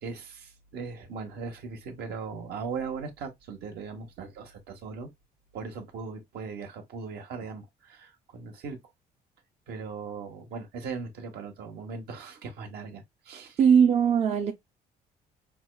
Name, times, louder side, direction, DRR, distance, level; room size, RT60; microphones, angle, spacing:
voice 1, 0.0-5.1 5.5-8.8 9.7-13.6, right 5 dB, 70° right, 1.2 m, -39 dB
voice 2, 13.6-14.5, right 7 dB, 40° right, 0.6 m, -20 dB
5.9 x 2.3 x 2.2 m
cardioid pair, 110°, 17 cm